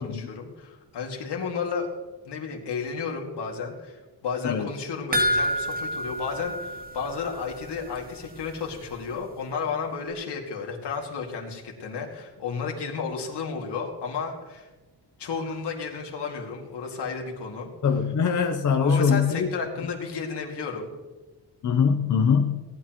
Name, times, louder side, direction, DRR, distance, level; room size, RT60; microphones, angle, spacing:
voice 1, 0.0-1.9 2.3-14.7 15.2-17.7 18.8-20.9, left 5 dB, 80° left, 1 dB, 2.3 m, -32 dB
sound 1, 5.1-7.7 8.0-8.1 8.5-8.6, equal, 20° right, 0.8 m, -28 dB
voice 2, 17.8-19.5 21.6-22.6, left 6 dB, 45° left, 5 dB, 0.8 m, -22 dB
18.0 x 11.0 x 3.0 m, 1.2 s
wide cardioid pair, 175°, 40 cm